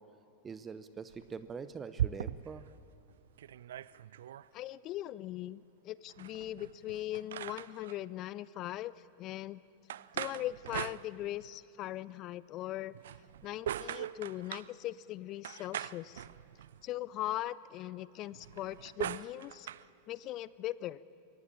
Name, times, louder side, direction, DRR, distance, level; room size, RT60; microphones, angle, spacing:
voice 1, 0.4-2.7, right 5 dB, 20° right, 13 dB, 0.8 m, -44 dB
sound 1, 1.1-2.7 3.1-3.2 3.4-4.5 6.1-8.0 9.9-11.6 12.9-14.7 15.4-16.9 18.3-19.9, right 11 dB, 60° right, 0.4 m, -40 dB
voice 2, 4.5-8.9 9.2-9.6 10.1-12.9 13.4-16.2 16.8-19.7 20.1-21.0, left 14 dB, 35° left, 20 dB, 0.5 m, -40 dB
23.0 x 17.5 x 8.7 m, 2.6 s
figure-of-eight pair, 90°, 0 cm